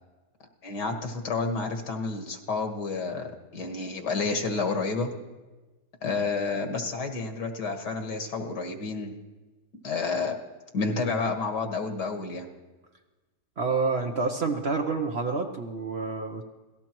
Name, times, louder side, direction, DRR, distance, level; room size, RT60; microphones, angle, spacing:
voice 1, 0.6-5.1 6.0-9.1 9.8-10.4 10.7-12.5, left 4 dB, 75° left, 3 dB, 2.2 m, -30 dB
voice 2, 13.6-16.4, right 4 dB, 50° right, 4 dB, 0.9 m, -28 dB
26.0 x 17.5 x 3.0 m, 1.2 s
omnidirectional pair, 1.8 m